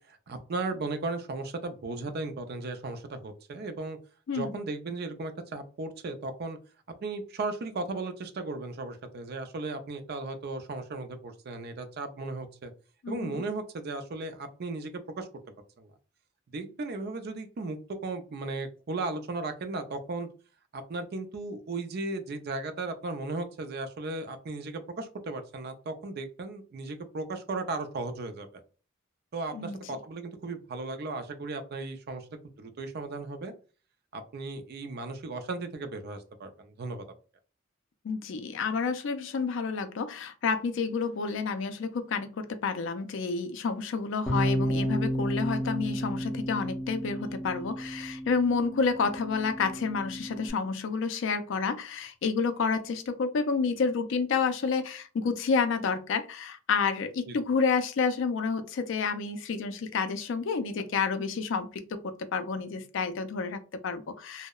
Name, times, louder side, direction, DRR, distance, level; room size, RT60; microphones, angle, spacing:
voice 1, 0.1-4.0 4.3-6.6 7.0-12.7 13.1-15.3 15.8-15.9 16.5-17.8 18.0-20.3 20.7-28.6 29.3-32.3 32.6-33.5 34.1-37.0 57.3-57.4, right 3 dB, 50° right, 0.4 m, -36 dB
voice 2, 13.0-13.4 29.5-30.0 38.0-64.5, left 5 dB, 65° left, 0.4 m, -29 dB
Bass guitar, 44.3-50.5, equal, ahead, 0.5 m, -32 dB
2.8 x 2.0 x 2.2 m
head